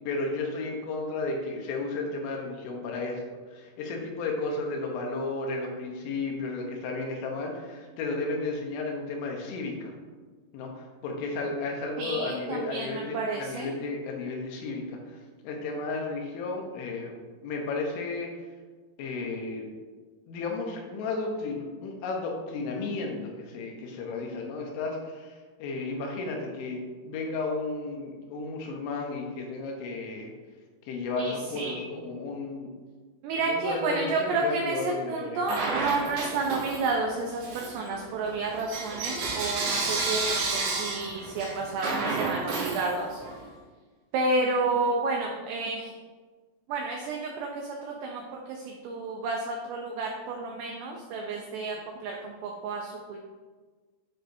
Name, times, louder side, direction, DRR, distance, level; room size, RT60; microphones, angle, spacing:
voice 1, 0.1-3.2 3.5-9.9 10.5-17.1 17.4-18.3 19.0-19.7 20.3-30.3 30.9-32.7 33.4-35.4, left 3 dB, 80° left, 1 dB, 3.2 m, -33 dB
voice 2, 12.0-13.7 31.2-31.7 33.2-34.8 35.1-43.2 44.1-45.9 46.7-51.8 52.0-53.2, right 3 dB, 85° right, 0 dB, 2.4 m, -31 dB
Bell / Coin (dropping), 35.4-37.0 37.4-43.4, right 3 dB, 65° right, 3.0 m, -31 dB
11.5 x 4.9 x 2.7 m, 1.4 s
omnidirectional pair, 5.7 m